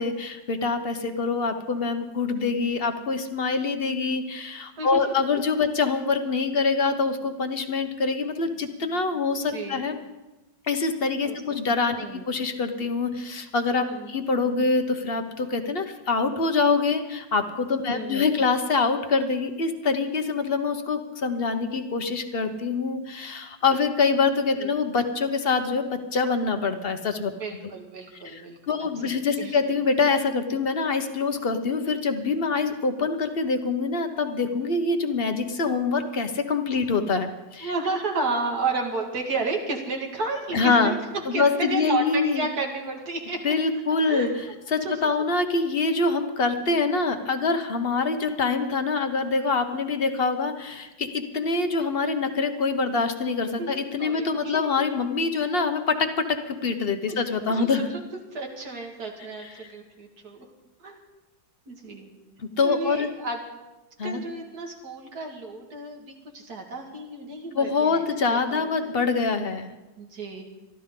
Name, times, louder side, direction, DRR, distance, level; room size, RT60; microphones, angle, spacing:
voice 1, 0.0-10.0 10.7-27.3 28.2-37.7 40.5-40.9 41.3-42.4 43.4-57.9 62.4-63.1 64.0-64.2 67.5-69.7, left 4 dB, 40° left, 7 dB, 1.0 m, -25 dB
voice 2, 9.5-9.8 11.2-11.4 11.9-12.3 13.9-14.1 17.9-18.3 24.6-24.7 27.4-29.6 37.6-43.5 44.1-44.3 44.8-45.0 53.6-54.6 57.1-57.2 57.5-58.0 58.3-60.5 60.8-61.0 61.7-62.2 62.6-63.4 64.0-68.7 70.0-70.4, right 3 dB, 55° right, 1 dB, 2.5 m, -32 dB
23.0 x 13.5 x 3.8 m, 1.0 s
omnidirectional pair, 2.0 m